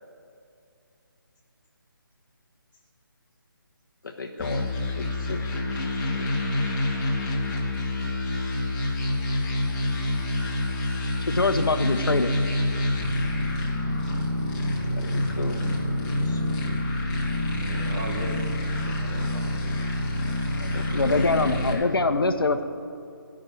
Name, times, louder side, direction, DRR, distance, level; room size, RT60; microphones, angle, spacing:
voice 1, 4.0-6.3 14.8-15.6 16.2-16.4 20.6-22.2, left 4 dB, 60° left, 1 dB, 1.2 m, -37 dB
sound 1, 4.4-21.7, left 1 dB, 20° left, 2.1 m, -27 dB
voice 2, 11.3-12.3 20.9-22.6, left 3 dB, 75° left, 9 dB, 1.1 m, -23 dB
voice 3, 17.1-19.6 21.0-21.3, right 2 dB, 45° right, -4 dB, 2.2 m, -38 dB
13.5 x 6.4 x 9.3 m, 2.6 s
figure-of-eight pair, 155°, 12 cm